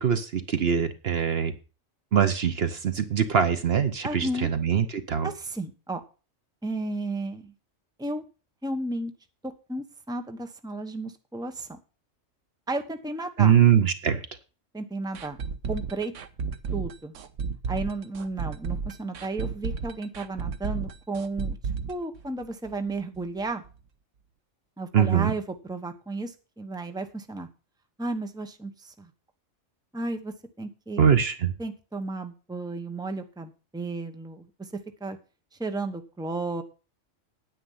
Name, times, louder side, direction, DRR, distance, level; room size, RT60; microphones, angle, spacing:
voice 1, 0.0-1.5 2.1-5.3 13.4-14.2 24.9-25.3 31.0-31.5, right 8 dB, 55° right, 10 dB, 1.1 m, -22 dB
voice 2, 4.0-4.5 5.2-6.0 6.6-7.5 8.0-8.2 8.6-9.1 9.4-11.7 12.7-13.6 14.7-15.4 15.7-16.1 16.7-17.1 17.7-21.6 21.9-23.6 24.8-27.5 28.0-29.1 29.9-31.0 31.6-34.7 35.0-35.2 35.6-36.6, right 2 dB, 5° right, 7 dB, 1.0 m, -33 dB
sound 1, 15.1-22.9 23.1-23.2 23.6-23.7, right 5 dB, 80° right, 1.2 m, -33 dB
9.5 x 9.0 x 5.6 m, 0.34 s
omnidirectional pair, 1.3 m